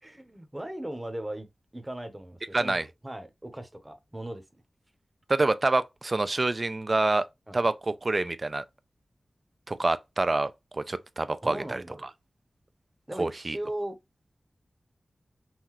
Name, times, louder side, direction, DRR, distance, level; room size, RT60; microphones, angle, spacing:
voice 1, 0.0-1.5 1.7-4.4 7.5-7.7 11.4-12.1 13.1-13.9, right 1 dB, 15° right, 0.9 m, -38 dB
voice 2, 2.5-2.9 5.3-7.3 7.5-8.6 9.7-11.8 13.2-13.6, right 2 dB, 40° right, 0.5 m, -27 dB
5.7 x 2.6 x 3.1 m
wide cardioid pair, 105°, 0 cm